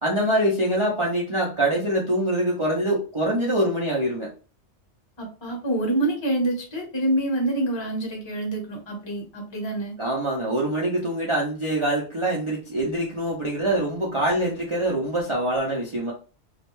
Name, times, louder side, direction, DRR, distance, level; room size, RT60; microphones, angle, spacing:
voice 1, 0.0-4.3 10.0-16.1, right 1 dB, 45° right, -4 dB, 0.4 m, -24 dB
voice 2, 5.2-9.9, right 1 dB, 25° left, 0 dB, 0.8 m, -26 dB
2.4 x 2.1 x 3.0 m, 0.35 s
omnidirectional pair, 1.3 m